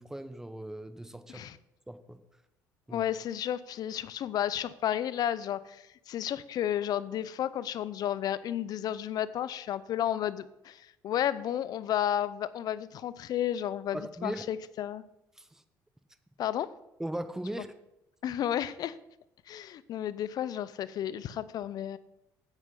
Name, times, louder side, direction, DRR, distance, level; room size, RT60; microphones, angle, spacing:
voice 1, 0.0-1.4 1.9-2.2 2.9-3.0 13.9-14.4 15.4-15.6 17.0-17.7, right 1 dB, 5° right, 10 dB, 1.0 m, -38 dB
voice 2, 2.9-15.0 16.4-16.7 18.2-19.0 19.5-22.0, left 10 dB, 60° left, 16 dB, 0.6 m, -32 dB
9.7 x 8.1 x 5.5 m, 0.87 s
supercardioid pair, 75°, 7 cm